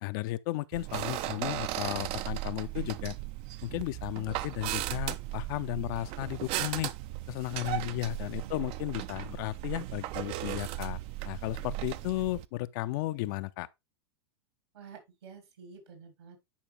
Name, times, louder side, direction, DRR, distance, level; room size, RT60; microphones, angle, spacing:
voice 1, 0.0-3.1 3.6-6.9 7.3-11.0 11.2-13.7, left 17 dB, 50° left, 0.6 m, -34 dB
sound 1, 0.7-12.5, right 15 dB, 45° right, 0.6 m, -36 dB
voice 2, 7.7-8.6 14.7-16.4, right 6 dB, 75° right, 3.6 m, -50 dB
10.0 x 5.1 x 3.3 m
hypercardioid pair, 95°, 14 cm